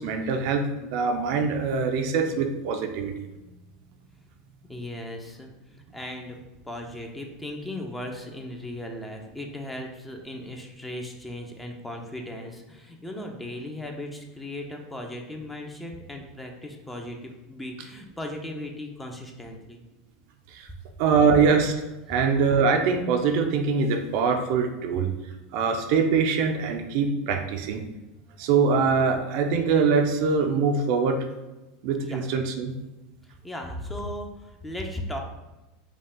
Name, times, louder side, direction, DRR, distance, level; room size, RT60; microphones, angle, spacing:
voice 1, 0.0-3.1 20.5-20.7 21.0-21.7 22.1-25.1 25.5-27.8 28.4-31.2 31.8-32.7, right 5 dB, 65° right, 4 dB, 0.5 m, -23 dB
voice 2, 4.7-6.4 6.6-19.8 32.0-32.2 33.4-35.2, left 1 dB, 10° left, 2 dB, 0.7 m, -37 dB
5.2 x 2.4 x 3.6 m, 1.1 s
hypercardioid pair, 95°, 0 cm